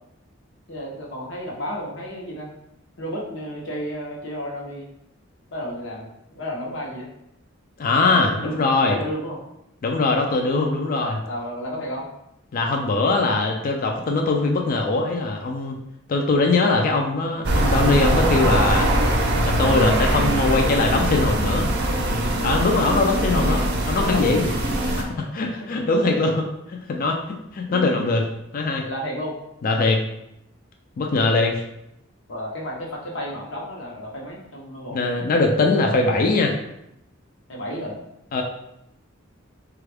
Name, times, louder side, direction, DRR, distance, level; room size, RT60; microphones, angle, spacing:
voice 1, 0.7-2.5 3.0-4.9 5.5-7.1 8.0-9.4 10.9-12.1 22.3-22.7 23.2-23.6 24.0-24.7 25.6-26.1 27.7-28.2 28.8-29.4 32.3-35.0 37.5-38.0, equal, 70° left, -2 dB, 0.9 m, -32 dB
voice 2, 7.8-9.0 9.8-11.2 12.5-15.8 16.1-18.9 19.4-21.7 22.4-24.4 24.8-28.3 28.5-28.9 29.6-30.0 31.0-31.6 34.9-36.6 38.3-38.4, left 3 dB, 45° left, 2 dB, 0.4 m, -21 dB
sound 1, 17.4-25.0, right 1 dB, 60° right, 0.6 m, -22 dB
3.4 x 2.4 x 3.3 m, 0.82 s
head